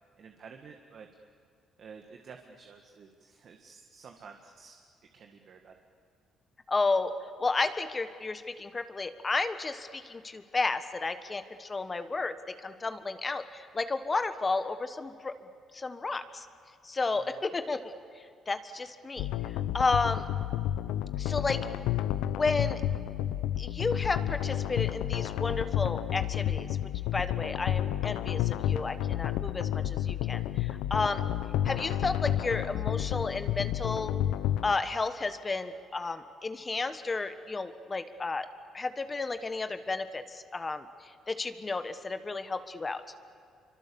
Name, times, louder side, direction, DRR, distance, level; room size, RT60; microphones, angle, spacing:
voice 1, 0.2-1.1 1.8-4.8 5.1-5.7 17.1-17.3 31.6-31.8, right 5 dB, 60° right, 4 dB, 1.8 m, -51 dB
voice 2, 6.7-7.1 7.4-15.3 15.7-16.4 16.8-17.9 18.5-19.3 19.7-20.2 21.2-21.6 22.3-22.8 23.6-26.7 27.1-31.2 31.6-34.1 34.6-38.5 38.7-40.9 41.3-43.0, left 3 dB, 30° left, 10 dB, 1.4 m, -32 dB
sound 1, 19.2-34.7, left 12 dB, 85° left, 0.6 m, -31 dB
26.5 x 24.5 x 7.1 m, 2.3 s
supercardioid pair, 75°, 0 cm